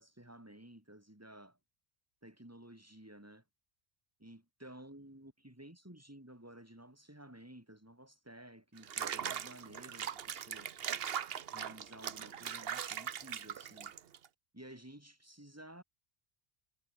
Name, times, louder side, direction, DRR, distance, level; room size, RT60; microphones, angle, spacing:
voice 1, 0.0-1.6 2.2-3.4 4.2-10.7 11.5-13.9 14.5-15.8, right 1 dB, 15° right, 3.3 m, -54 dB
Water / Bathtub (filling or washing), 8.8-14.3, right 8 dB, 65° right, 1.1 m, -40 dB
omnidirectional pair, 1.1 m